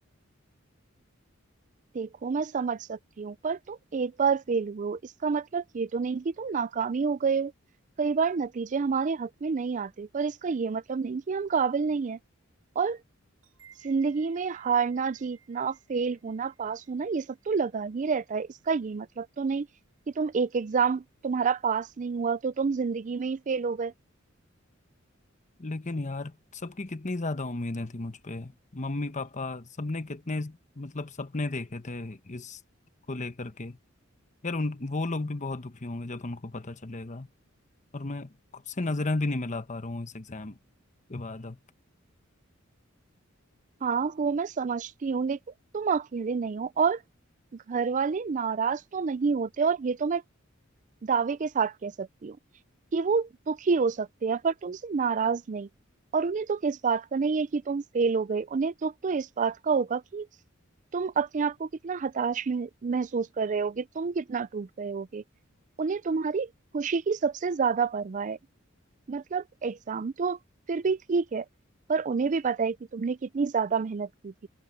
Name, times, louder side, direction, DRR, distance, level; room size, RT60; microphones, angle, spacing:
voice 1, 1.9-7.5 8.0-12.2 12.8-13.0 13.8-19.7 20.2-23.9 43.8-45.4 45.7-47.0 47.5-50.2 51.0-52.4 52.9-55.7 56.1-60.3 60.9-65.2 65.8-68.4 69.1-70.4 70.7-71.4 71.9-74.5, right 5 dB, 40° right, 0.4 m, -28 dB
sound 1, 13.4-18.9, right 8 dB, 85° right, 6.1 m, -60 dB
voice 2, 25.6-32.6 33.1-33.8 34.4-37.3 37.9-40.6 41.1-41.6, left 2 dB, 35° left, 1.1 m, -34 dB
head